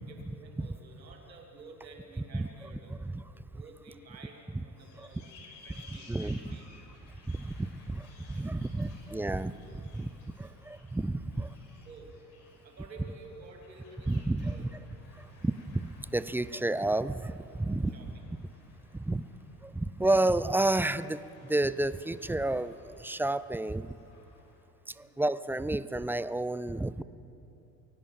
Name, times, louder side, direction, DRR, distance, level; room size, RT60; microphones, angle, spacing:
voice 1, 0.0-2.9 3.5-5.2 5.6-6.7 8.3-8.7 10.4-10.6 11.8-12.1 12.6-14.6 17.9-18.1 24.9-25.2, right 3 dB, 85° right, 2 dB, 3.0 m, -52 dB
sound 1, 4.8-24.6, left 4 dB, 60° left, 5.7 m, -59 dB
voice 2, 6.1-6.4 7.3-10.1 10.4-11.5 14.1-14.7 15.2-17.9 18.9-19.2 19.6-24.0 24.9-27.0, right 2 dB, 5° right, 16 dB, 0.4 m, -31 dB
22.5 x 18.0 x 7.1 m, 3.0 s
figure-of-eight pair, 65°, 50 cm